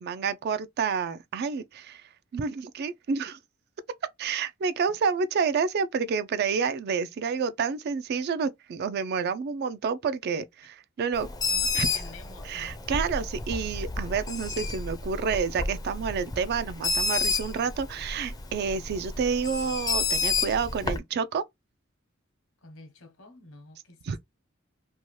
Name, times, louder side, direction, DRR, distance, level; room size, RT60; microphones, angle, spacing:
voice 1, 0.0-2.0 2.3-3.4 4.2-11.3 11.8-11.9 12.5-21.4 24.0-24.2, right 5 dB, 50° right, 0.3 m, -29 dB
Bird, 11.1-21.0, left 3 dB, 20° left, 0.4 m, -31 dB
voice 2, 11.2-12.8 22.6-24.2, left 2 dB, 75° left, 0.9 m, -49 dB
2.7 x 2.2 x 3.0 m
head